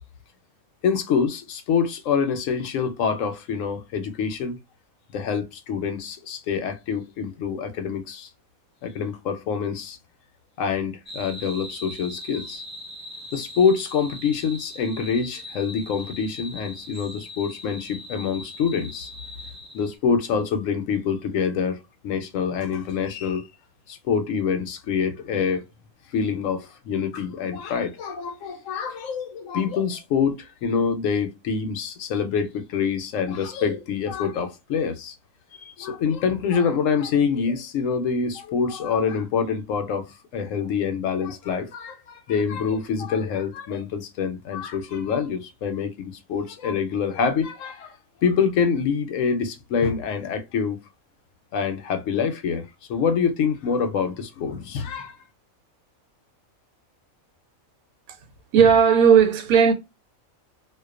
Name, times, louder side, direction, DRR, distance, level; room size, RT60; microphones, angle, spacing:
voice 1, 0.8-4.6 5.1-8.3 8.8-10.0 10.6-12.6 13.3-19.1 19.7-21.8 22.0-23.5 23.9-25.6 26.1-35.1 35.6-40.1 40.3-47.9 48.2-50.8 51.5-55.2, left 6 dB, 70° left, 0.9 m, -26 dB
sound 1, 11.1-20.0, left 1 dB, ahead, 1.1 m, -40 dB
voice 2, 58.5-59.7, right 7 dB, 80° right, 1.0 m, -15 dB
2.4 x 2.2 x 2.3 m
omnidirectional pair, 1.4 m